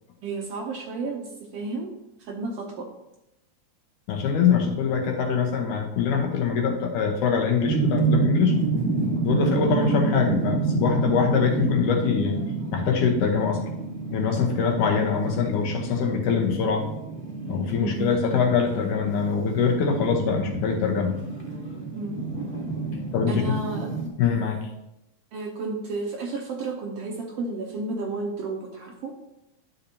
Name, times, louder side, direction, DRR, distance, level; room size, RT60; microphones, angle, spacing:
voice 1, 0.2-2.9 9.5-9.8 17.8-18.1 21.9-22.2 23.3-24.1 25.3-29.2, right 3 dB, 85° right, 0 dB, 1.3 m, -32 dB
voice 2, 4.1-8.5 9.2-12.4 12.7-13.6 14.1-16.9 17.5-21.1 23.1-23.4 24.2-24.7, left 6 dB, 75° left, 2 dB, 2.5 m, -23 dB
sound 1, 7.6-24.1, right 4 dB, 5° left, 0.9 m, -29 dB
11.0 x 6.8 x 2.8 m, 0.90 s
omnidirectional pair, 3.8 m